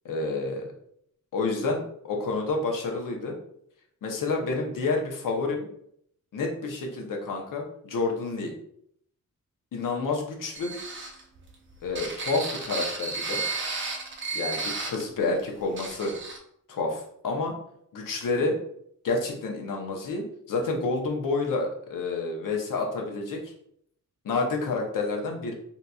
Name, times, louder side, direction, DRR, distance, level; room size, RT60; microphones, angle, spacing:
voice 1, 0.0-0.7 1.3-3.3 4.0-5.7 6.3-8.5 9.7-10.7 11.8-13.4 14.3-16.1 16.7-17.5 17.9-18.6 19.0-23.5 24.2-25.5, left 3 dB, 85° left, 2 dB, 0.8 m, -29 dB
sound 1, 10.5-15.1 15.4-15.5 15.8-16.4, right 3 dB, 40° right, 0.5 m, -33 dB
3.9 x 2.8 x 2.3 m, 0.69 s
wide cardioid pair, 175°, 32 cm